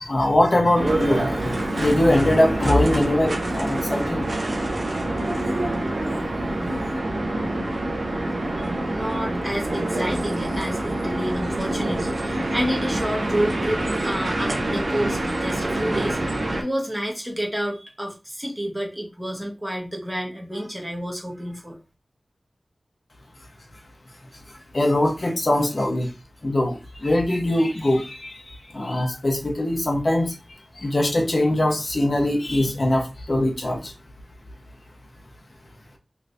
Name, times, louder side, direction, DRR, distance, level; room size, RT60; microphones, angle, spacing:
voice 1, 0.0-4.3 24.7-26.1 26.4-30.3 30.8-33.9, left 1 dB, 55° left, 1 dB, 1.0 m, -22 dB
sound 1, 0.8-16.6, right 1 dB, 65° right, 0.6 m, -26 dB
voice 2, 8.6-21.8, equal, 5° right, -2 dB, 1.1 m, -29 dB
3.3 x 3.0 x 2.6 m, 0.30 s
wide cardioid pair, 60°, 0 cm